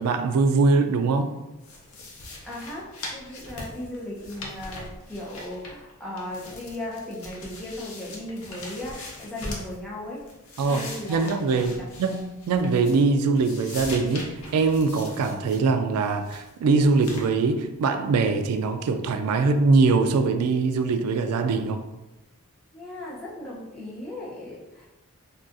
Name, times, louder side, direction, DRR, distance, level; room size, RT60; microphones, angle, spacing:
voice 1, 0.0-1.3 10.6-21.8, right 4 dB, 90° right, 7 dB, 0.3 m, -22 dB
sound 1, 1.6-5.9 6.2-9.8 10.2-13.1 13.4-15.6 16.0-16.5 17.0-17.3, left 2 dB, 75° left, 0.6 m, -41 dB
voice 2, 2.4-10.2 10.7-11.3 11.8-11.9 22.7-24.9, left 1 dB, 5° left, -6 dB, 0.6 m, -37 dB
3.7 x 2.3 x 2.5 m, 1.0 s
head